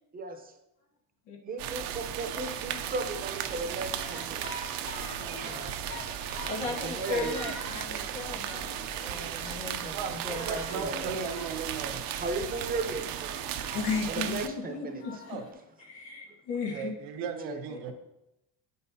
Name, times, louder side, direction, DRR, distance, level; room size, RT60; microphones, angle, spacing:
voice 1, 0.1-0.5 1.4-4.7 6.6-7.5 10.7-11.2 11.8-13.4 14.1-15.0 17.1-17.6, right 3 dB, 20° right, 6 dB, 0.8 m, -36 dB
sound 1, 1.6-14.5, right 10 dB, 60° right, 0.6 m, -36 dB
sound 2, 1.9-15.5, left 2 dB, 50° left, 2.6 m, -46 dB
voice 2, 5.2-5.6 6.4-11.3 13.7-15.5 15.8-16.9 17.7-17.9, left 4 dB, 85° left, 0 dB, 1.6 m, -36 dB
voice 3, 9.9-12.0 15.3-15.5 16.7-17.9, right 6 dB, 80° right, 6 dB, 1.0 m, -37 dB
8.6 x 5.5 x 2.8 m, 0.91 s
cardioid pair, 120°, 39 cm